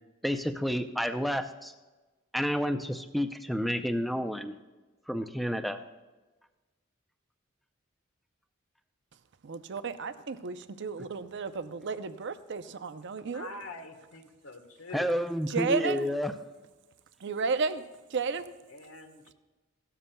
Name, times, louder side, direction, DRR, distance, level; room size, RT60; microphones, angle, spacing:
voice 1, 0.2-1.7 2.3-4.6 5.1-5.8 14.9-16.3, equal, ahead, 7 dB, 0.5 m, -30 dB
voice 2, 9.4-13.5 15.5-16.1 17.2-17.8 18.1-18.5, right 4 dB, 60° right, 11 dB, 0.6 m, -32 dB
voice 3, 13.3-15.1 18.7-19.1, left 3 dB, 85° left, 5 dB, 1.3 m, -44 dB
17.0 x 12.5 x 2.3 m, 1.2 s
head